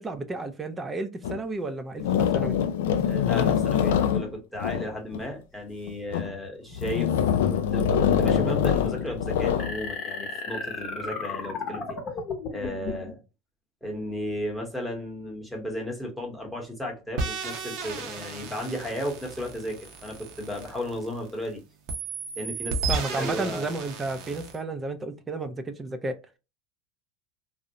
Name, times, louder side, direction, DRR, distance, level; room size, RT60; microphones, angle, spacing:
voice 1, 0.0-2.6 22.9-26.3, right 2 dB, 20° right, 0.4 m, -32 dB
sound 1, 1.2-1.4 2.0-5.3 5.9-6.4 6.8-9.8, left 8 dB, 80° left, 0.3 m, -24 dB
voice 2, 3.0-7.1 7.5-12.0 12.5-13.2 13.8-21.6 22.4-22.8 23.1-23.7 26.0-26.1, left 1 dB, ahead, 0.9 m, -34 dB
sound 2, 9.6-13.1, left 4 dB, 40° left, 0.8 m, -34 dB
sound 3, 17.2-21.5 21.9-24.6, right 4 dB, 60° right, 0.6 m, -34 dB
2.5 x 2.0 x 2.7 m
supercardioid pair, 125°, 0 cm